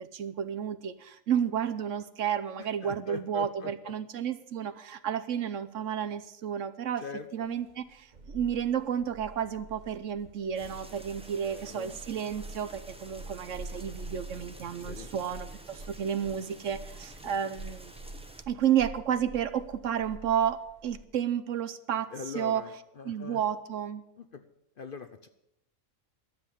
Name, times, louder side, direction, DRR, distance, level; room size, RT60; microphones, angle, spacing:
voice 1, 0.0-7.0 7.3-17.9 18.5-22.6 23.0-24.0, right 9 dB, 65° right, 13 dB, 1.0 m, -31 dB
voice 2, 2.8-3.9 7.0-7.6 11.4-12.0 14.8-15.1 17.2-17.3 22.1-23.4 24.2-24.4 24.8-25.3, left 5 dB, 50° left, 9 dB, 0.8 m, -42 dB
sound 1, 7.6-21.0, right 2 dB, 35° right, 1.0 m, -46 dB
sound 2, 10.6-18.4, equal, 5° right, 1.0 m, -51 dB
12.0 x 7.7 x 10.0 m, 0.82 s
omnidirectional pair, 1.5 m